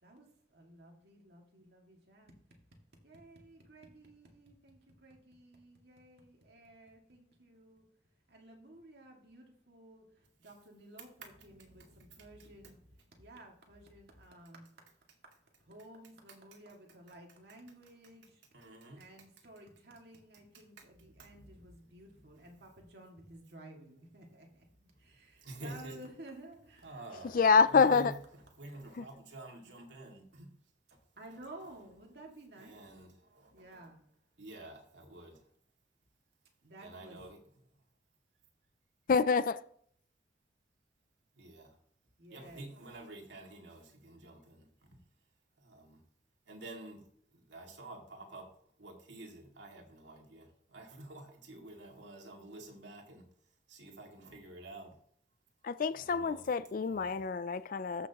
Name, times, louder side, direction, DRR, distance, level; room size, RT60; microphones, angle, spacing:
voice 1, 0.0-2.4 3.0-7.9 8.3-12.9 13.2-14.9 15.6-18.4 18.9-27.8 31.2-32.8 33.5-34.1 36.6-37.2 42.2-42.7, right 1 dB, 65° right, 2.2 m, -54 dB
voice 2, 11.2-12.7 18.5-19.1 21.1-21.7 24.9-26.0 26.8-27.4 27.7-28.1 28.6-30.5 30.9-31.0 31.3-31.4 32.6-33.8 34.4-35.5 36.8-37.4 37.7-37.8 41.3-41.8 42.3-45.0 45.6-46.0 46.5-47.0 47.3-48.5 48.8-53.3 53.7-55.0 55.9-56.5 56.9-57.3, right 2 dB, 85° right, 2.3 m, -50 dB
voice 3, 27.3-28.1 29.0-29.1 39.1-39.6 55.6-58.1, left 5 dB, 50° left, 0.4 m, -27 dB
14.0 x 6.1 x 3.0 m
head